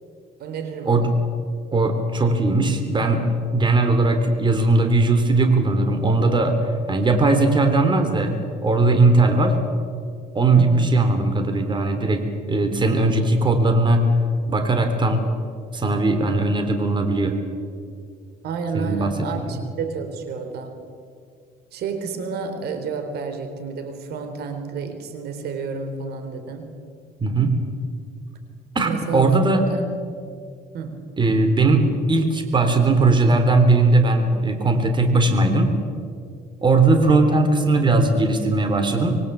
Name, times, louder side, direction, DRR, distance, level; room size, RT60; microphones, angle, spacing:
voice 1, 0.4-1.1 10.6-11.0 18.4-20.8 21.7-26.7 28.8-29.9 30.7-31.0 36.9-37.2, right 5 dB, 70° right, 7 dB, 3.9 m, -30 dB
voice 2, 1.7-9.6 10.3-14.1 14.5-15.2 15.7-17.3 18.7-19.1 27.2-27.6 28.7-29.6 31.2-35.7 36.6-39.2, right 2 dB, 30° right, 6 dB, 3.5 m, -19 dB
25.0 x 23.0 x 8.2 m, 2.2 s
cardioid pair, 110°, 17 cm